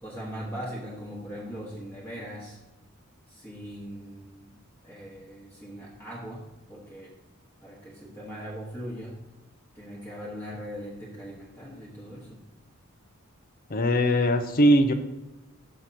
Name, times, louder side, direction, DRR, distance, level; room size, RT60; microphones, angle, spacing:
voice 1, 0.0-2.6 3.3-7.1 7.6-9.2 9.7-12.4, equal, 10° left, -6 dB, 1.2 m, -40 dB
voice 2, 13.7-14.9, equal, 45° left, 8 dB, 0.5 m, -20 dB
6.3 x 5.9 x 4.1 m, 1.0 s
head